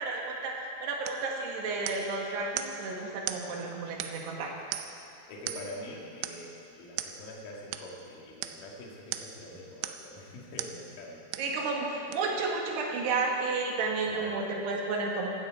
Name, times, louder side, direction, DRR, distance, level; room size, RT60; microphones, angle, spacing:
voice 1, 0.0-4.5 11.4-15.3, right 3 dB, 65° right, 0 dB, 3.3 m, -32 dB
sound 1, 1.1-1.3 1.9-2.2 2.6-2.8 3.3-3.5 4.0-4.3 4.7-5.1 5.5-5.8 6.2-6.5 7.0-7.2 7.7-7.9 8.4-8.6 9.1-9.4 9.8-10.1 10.6-10.8 11.3-11.6 12.1-12.2, right 12 dB, 80° right, 2.9 m, -37 dB
voice 2, 5.3-11.2 14.1-14.7, left 1 dB, 55° left, -2 dB, 2.9 m, -44 dB
16.5 x 13.0 x 4.7 m, 2.9 s
omnidirectional pair, 5.6 m